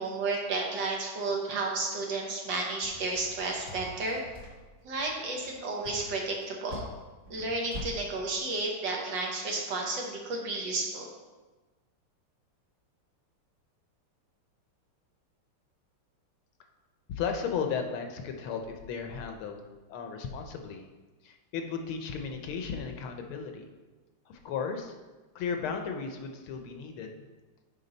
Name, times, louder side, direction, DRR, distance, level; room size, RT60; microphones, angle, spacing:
voice 1, 0.0-4.2 4.8-6.8 7.3-11.1, right 3 dB, 60° right, 0 dB, 1.7 m, -32 dB
sound 1, 2.8-7.9, left 1 dB, 45° right, 1.6 m, -44 dB
voice 2, 17.1-19.6 19.9-20.9 21.2-23.6 24.3-24.9 25.3-27.1, left 6 dB, 75° left, 5 dB, 1.6 m, -35 dB
9.5 x 4.5 x 4.0 m, 1.2 s
omnidirectional pair, 2.4 m